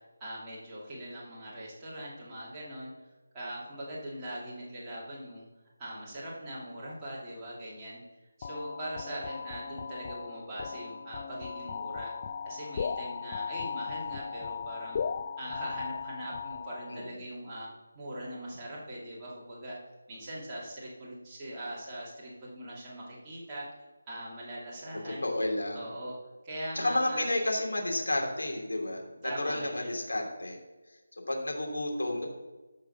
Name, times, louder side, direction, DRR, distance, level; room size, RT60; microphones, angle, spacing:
voice 1, 0.2-2.9 3.3-5.4 5.8-8.0 8.4-12.1 12.4-15.0 15.4-17.7 17.9-19.8 20.1-23.7 24.1-25.3 25.7-26.2 26.4-27.3 29.2-30.0, right 1 dB, 15° right, -8 dB, 2.5 m, -41 dB
sound 1, 8.4-17.1, left 6 dB, 30° left, 0.3 m, -37 dB
voice 2, 25.2-25.8 26.7-30.6 31.3-32.3, left 1 dB, 90° left, 1 dB, 3.1 m, -31 dB
13.5 x 4.9 x 6.0 m, 1.2 s
figure-of-eight pair, 170°, 0 cm